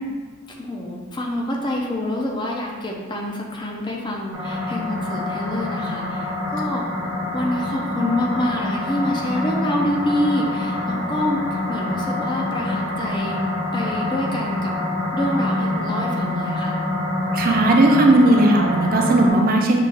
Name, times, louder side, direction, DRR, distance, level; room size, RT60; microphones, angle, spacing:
voice 1, 0.6-6.8 7.3-13.4 13.7-14.7 15.1-16.8, left 1 dB, 20° left, -1 dB, 0.5 m, -26 dB
sound 1, 4.3-19.3, left 1 dB, 10° right, 0.8 m, -26 dB
voice 2, 17.3-19.8, right 2 dB, 40° right, 2 dB, 0.4 m, -16 dB
5.6 x 2.5 x 3.8 m, 1.4 s
head